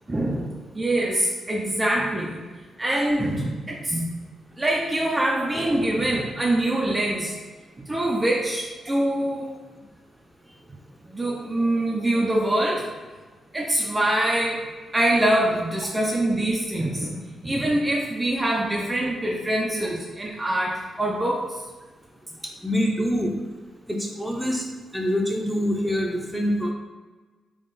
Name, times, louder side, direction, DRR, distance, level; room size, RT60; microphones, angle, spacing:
voice 1, 0.1-2.4 2.8-4.1 4.6-7.4 7.9-9.5 11.1-12.9 13.5-14.7 14.9-17.2 17.4-21.6, right 1 dB, 25° right, -3 dB, 0.6 m, -24 dB
voice 2, 22.6-23.3 23.9-24.6 24.9-26.7, equal, 5° right, -1 dB, 0.9 m, -25 dB
3.6 x 2.5 x 4.0 m, 1.3 s
supercardioid pair, 50°, 0 cm